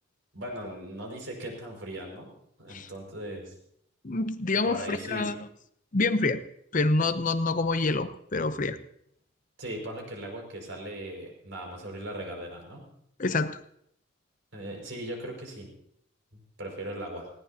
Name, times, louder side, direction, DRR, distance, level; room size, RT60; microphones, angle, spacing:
voice 1, 0.3-2.3 2.6-3.6 4.6-5.3 9.6-12.9 14.5-15.7 16.3-17.3, right 1 dB, 70° right, 1 dB, 5.5 m, -38 dB
voice 2, 4.0-5.3 5.9-6.4 6.7-8.8 13.2-13.6, left 3 dB, 40° left, 10 dB, 0.7 m, -27 dB
19.5 x 17.0 x 2.9 m, 0.71 s
head